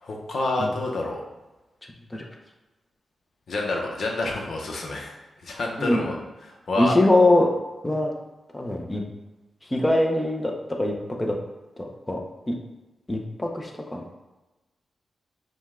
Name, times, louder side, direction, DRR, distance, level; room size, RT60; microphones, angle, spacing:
voice 1, 0.0-1.2 3.5-5.1 5.4-6.2 6.4-7.0, left 2 dB, 65° left, 0 dB, 0.8 m, -28 dB
voice 2, 6.8-7.5 7.8-8.1 8.5-9.0 9.7-10.5 10.8-10.9 11.2-11.4 11.8-12.2 12.5-12.6 13.1-14.0, left 1 dB, 15° left, 0 dB, 0.7 m, -22 dB
5.2 x 2.3 x 3.6 m, 1.1 s
wide cardioid pair, 110°, 0 cm